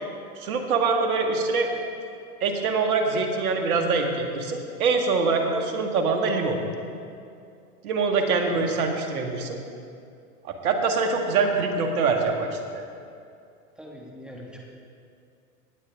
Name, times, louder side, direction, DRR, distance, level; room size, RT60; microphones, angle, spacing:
voice 1, 0.4-1.7 2.4-6.6 7.8-9.6 10.4-12.8, right 4 dB, 70° right, 3 dB, 1.8 m, -24 dB
voice 2, 13.8-14.6, equal, ahead, -3 dB, 1.9 m, -43 dB
18.5 x 8.5 x 3.6 m, 2.5 s
hypercardioid pair, 110°, 45 cm